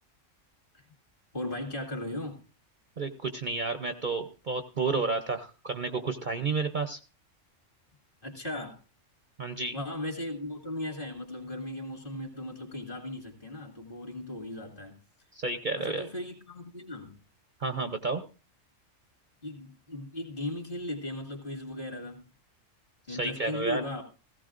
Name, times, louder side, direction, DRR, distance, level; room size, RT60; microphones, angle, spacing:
voice 1, 1.3-2.4 8.2-8.8 9.7-15.0 15.8-17.2 19.4-22.2 23.1-24.0, left 1 dB, 40° left, 2.5 m, -37 dB
voice 2, 3.0-7.0 9.4-9.8 15.3-16.1 17.6-18.2 23.1-23.8, right 3 dB, 45° right, 0.8 m, -31 dB
17.0 x 15.5 x 2.5 m
omnidirectional pair, 1.3 m